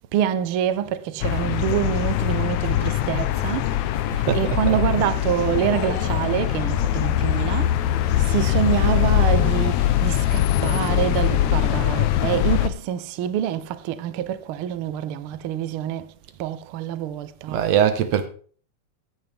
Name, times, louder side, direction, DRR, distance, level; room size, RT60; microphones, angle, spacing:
voice 1, 0.1-17.7, right 10 dB, 85° right, 1.2 m, -26 dB
sound 1, 1.2-12.7, left 12 dB, 75° left, 2.0 m, -22 dB
voice 2, 4.1-4.8 17.5-18.3, right 9 dB, 65° right, 2.2 m, -22 dB
15.5 x 9.6 x 3.4 m
omnidirectional pair, 3.4 m